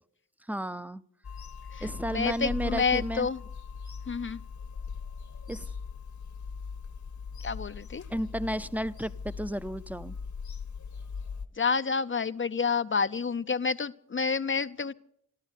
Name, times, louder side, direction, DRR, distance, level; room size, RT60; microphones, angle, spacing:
voice 1, 0.5-1.0 1.8-3.3 5.5-5.7 8.1-10.2, equal, 5° right, 15 dB, 0.7 m, -32 dB
Bird vocalization bird call bird song / Telephone, 1.2-11.5, left 5 dB, 70° left, 1.4 m, -40 dB
voice 2, 1.7-3.4 4.1-4.4 7.4-8.0 11.6-14.9, left 5 dB, 40° left, 12 dB, 0.6 m, -29 dB
14.0 x 12.0 x 8.2 m, 0.67 s
cardioid pair, 40°, 30 cm